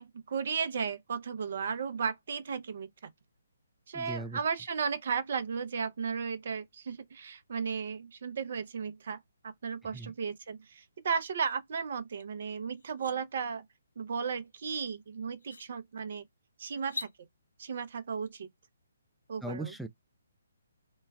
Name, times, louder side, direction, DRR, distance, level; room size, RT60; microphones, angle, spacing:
voice 1, 0.0-2.9 3.9-9.2 9.6-13.6 14.0-16.2 16.6-17.1 17.6-18.5 19.3-19.7, right 6 dB, 55° right, 0.7 m, -35 dB
voice 2, 3.9-4.4 9.9-10.1 19.4-19.9, right 2 dB, ahead, 0.4 m, -38 dB
sound 1, 12.2-12.3 12.7-13.1 14.8-14.9 15.4-15.7 16.8-17.1, left 3 dB, 75° left, 0.5 m, -41 dB
3.0 x 2.3 x 3.3 m
figure-of-eight pair, 140°, 0 cm